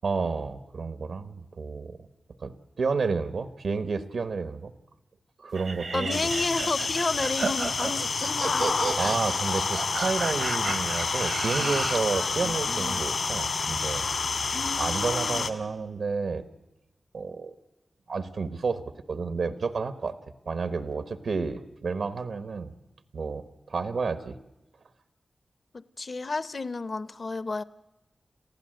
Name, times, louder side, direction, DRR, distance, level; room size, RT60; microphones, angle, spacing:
voice 1, 0.0-2.0 2.4-4.7 5.4-6.2 9.0-14.4 14.8-16.4 17.1-17.5 18.1-18.8 19.1-20.1 20.4-22.7 23.1-24.4, right 4 dB, 85° right, 11 dB, 1.2 m, -30 dB
sound 1, 5.5-12.1, right 4 dB, 60° right, 0.9 m, -33 dB
voice 2, 5.9-8.7 9.0-9.2 12.1-13.0 14.5-15.5 25.7-27.6, left 3 dB, 45° left, 16 dB, 0.7 m, -32 dB
sound 2, 6.1-15.5, left 4 dB, 70° left, 2.1 m, -29 dB
29.0 x 15.5 x 7.8 m, 1.0 s
wide cardioid pair, 130°, 0 cm